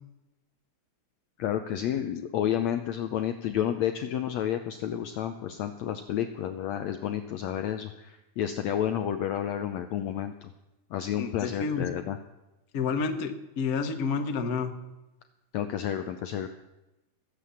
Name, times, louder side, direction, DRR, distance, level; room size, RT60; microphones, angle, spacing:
voice 1, 1.4-10.5 10.9-12.2 15.5-16.5, left 10 dB, 85° left, 8 dB, 1.5 m, -30 dB
voice 2, 11.2-11.8 12.7-14.7, left 5 dB, 65° left, 6 dB, 0.8 m, -29 dB
22.0 x 8.4 x 7.2 m, 0.98 s
omnidirectional pair, 4.1 m